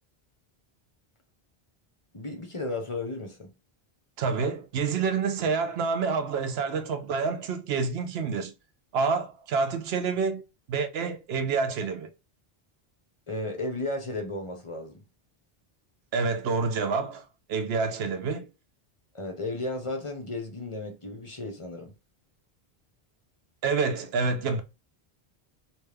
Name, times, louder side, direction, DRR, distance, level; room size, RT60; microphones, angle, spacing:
voice 1, 2.1-3.5 13.3-15.0 19.1-21.9, left 2 dB, 35° left, 0.8 m, -34 dB
voice 2, 4.2-8.5 8.9-10.4 10.7-12.1 16.1-17.2 17.5-18.5 23.6-24.6, right 5 dB, 80° right, 0.8 m, -28 dB
3.2 x 2.9 x 3.3 m
omnidirectional pair, 1.0 m